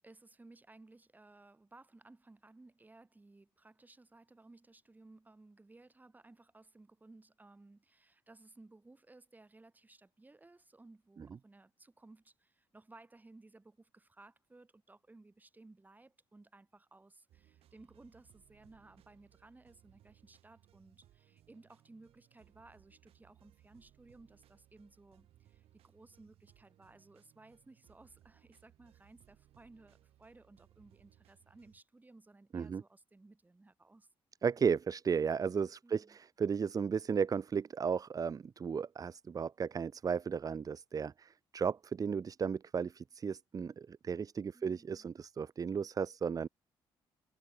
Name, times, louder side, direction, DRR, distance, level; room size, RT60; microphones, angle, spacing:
voice 1, 0.0-34.1 35.8-36.2 44.5-45.2, right 2 dB, 15° right, 3.0 m, -59 dB
sound 1, 17.3-31.8, right 13 dB, 80° right, 3.0 m, -66 dB
voice 2, 34.4-46.5, right 6 dB, 40° right, 0.8 m, -34 dB
cardioid pair, 95°, 10 cm